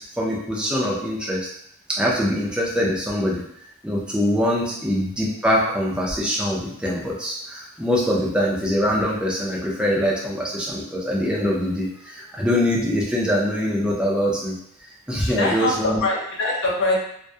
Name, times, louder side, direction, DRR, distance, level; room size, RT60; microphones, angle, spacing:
voice 1, 0.0-1.5 1.9-3.4 3.8-14.6 15.1-16.0, equal, 5° right, -4 dB, 0.4 m, -23 dB
voice 2, 15.2-17.0, left 2 dB, 55° left, -2 dB, 0.6 m, -23 dB
2.3 x 2.1 x 2.6 m, 0.71 s
head